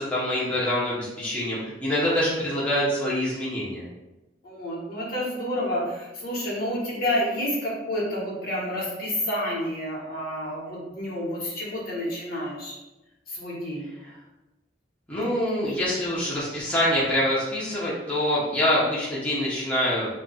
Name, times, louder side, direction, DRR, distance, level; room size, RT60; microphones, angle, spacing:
voice 1, 0.0-3.8 15.1-20.1, left 1 dB, 10° left, -8 dB, 0.6 m, -25 dB
voice 2, 4.4-12.7 13.3-13.9, left 1 dB, 55° left, -6 dB, 1.0 m, -29 dB
2.3 x 2.2 x 3.8 m, 1.0 s
head